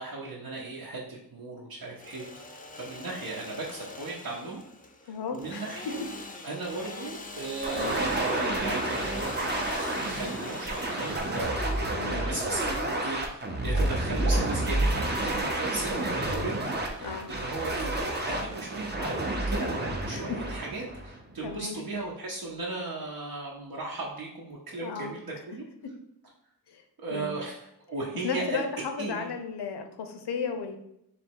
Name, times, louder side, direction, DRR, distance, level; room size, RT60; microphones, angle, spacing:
voice 1, 0.0-2.2 2.8-4.6 5.0-6.0 6.4-11.5 12.1-25.6 27.0-28.6 29.0-29.3, right 3 dB, 60° right, -4 dB, 0.8 m, -37 dB
Engine / Sawing, 1.8-13.5, left 3 dB, 20° left, 0.4 m, -44 dB
voice 2, 5.1-5.6 7.7-8.0 12.0-12.2 17.0-17.3 20.1-20.4 21.4-21.8 24.8-25.1 25.8-25.9 26.7-26.8 27.1-27.3 28.2-30.8, left 5 dB, 80° left, 7 dB, 0.6 m, -34 dB
sound 1, 7.6-21.5, right 1 dB, 25° right, 0.6 m, -30 dB
3.4 x 3.1 x 4.4 m, 0.78 s
wide cardioid pair, 155°, 39 cm